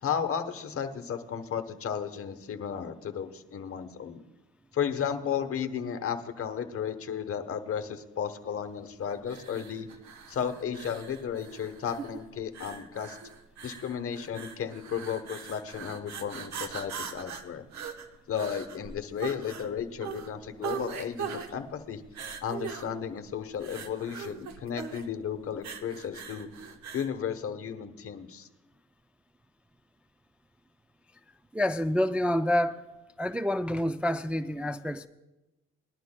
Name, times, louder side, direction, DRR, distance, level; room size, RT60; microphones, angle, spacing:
voice 1, 0.0-4.2 4.7-9.9 10.3-13.2 13.6-17.6 18.3-22.0 22.4-26.5 26.9-28.5, left 8 dB, 50° left, 1.0 m, -34 dB
sound 1, 9.2-27.2, right 7 dB, 65° right, 1.1 m, -41 dB
voice 2, 31.5-32.9 33.2-35.1, left 1 dB, 5° right, 0.3 m, -28 dB
20.5 x 11.5 x 2.2 m
cardioid pair, 90°, 30 cm